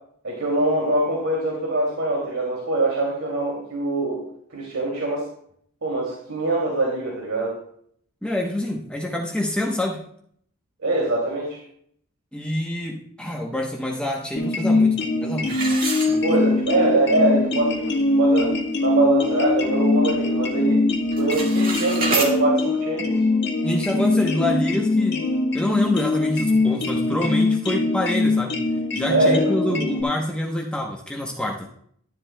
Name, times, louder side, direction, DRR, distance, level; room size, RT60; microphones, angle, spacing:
voice 1, 0.2-4.2 4.5-5.3 5.8-7.6 10.8-11.6 16.2-18.5 18.8-20.8 21.1-23.2 29.1-29.8, right 2 dB, 80° right, -2 dB, 2.5 m, -23 dB
voice 2, 8.2-10.0 12.3-15.7 16.1-16.3 23.6-25.2 25.5-28.6 28.9-31.7, left 1 dB, 5° left, -1 dB, 0.9 m, -26 dB
sound 1, 14.3-30.0, left 2 dB, 50° left, 1.6 m, -22 dB
sound 2, 15.5-16.7 17.2-17.3 17.8-17.9 18.3-18.6 19.1-20.2 20.5-20.8 21.1-22.3, right 3 dB, 40° right, 1.8 m, -28 dB
12.0 x 10.5 x 2.2 m, 0.64 s
head